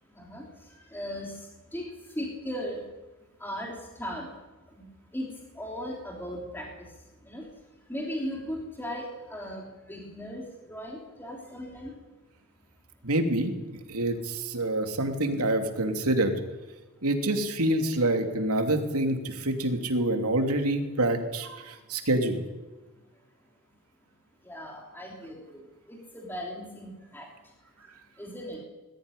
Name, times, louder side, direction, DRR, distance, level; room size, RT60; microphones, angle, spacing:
voice 1, 0.9-1.3 1.7-1.9 2.1-2.8 3.4-4.3 4.8-4.9 5.1-5.3 5.6-6.7 7.3-7.4 7.9-9.6 9.9-10.4 10.7-11.9 24.5-25.6 25.9-27.3 28.2-28.6, equal, 10° left, -1 dB, 3.3 m, -37 dB
voice 2, 13.0-13.5 13.9-16.3 17.0-22.4, right 1 dB, 80° right, 5 dB, 3.0 m, -26 dB
21.0 x 15.0 x 10.0 m, 1.2 s
head